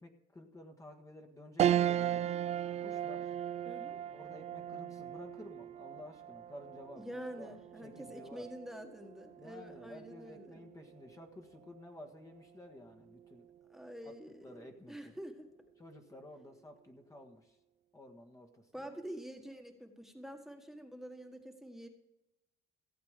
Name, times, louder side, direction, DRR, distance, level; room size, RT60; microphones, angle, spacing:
voice 1, 0.0-2.4 2.8-3.3 4.1-8.5 9.4-13.5 14.0-14.1 14.4-15.2 15.8-17.6 17.9-18.7, left 1 dB, 20° left, 3 dB, 1.5 m, -52 dB
sound 1, 1.6-11.2 11.7-11.8 13.1-13.6, right 11 dB, 40° right, 0.4 m, -37 dB
voice 2, 3.6-4.0 6.9-10.6 13.7-15.5 18.7-21.9, equal, ahead, 5 dB, 1.6 m, -47 dB
15.5 x 8.2 x 5.0 m, 0.92 s
cardioid pair, 110°, 17 cm